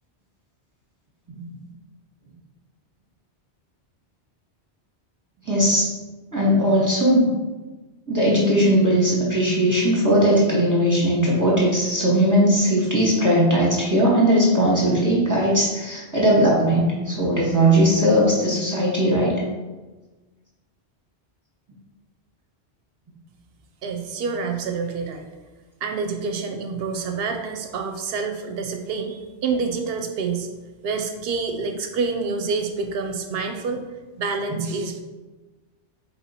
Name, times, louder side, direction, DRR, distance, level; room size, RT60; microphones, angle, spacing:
voice 1, 5.5-5.9 6.3-7.3 8.1-19.4 34.5-34.6, equal, 20° right, -5 dB, 0.9 m, -19 dB
voice 2, 23.8-25.3 25.8-30.5 30.8-33.8 34.2-35.0, right 4 dB, 65° right, 4 dB, 0.8 m, -27 dB
4.1 x 2.9 x 4.0 m, 1.2 s
omnidirectional pair, 1.1 m